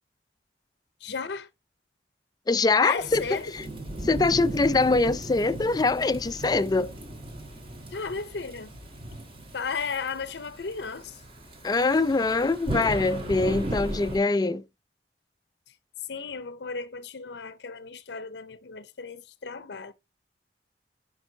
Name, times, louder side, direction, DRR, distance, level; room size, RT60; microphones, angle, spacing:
voice 1, 1.0-1.5 2.8-3.5 7.9-8.7 9.5-11.2 16.1-19.9, left 5 dB, 70° left, 0.6 m, -34 dB
voice 2, 2.5-3.2 3.5-3.7 4.0-6.9 11.6-14.6, left 3 dB, 20° left, 0.4 m, -23 dB
Thunderstorm / Rain, 3.0-14.2, right 1 dB, 30° right, 1.7 m, -37 dB
9.0 x 5.3 x 2.7 m
head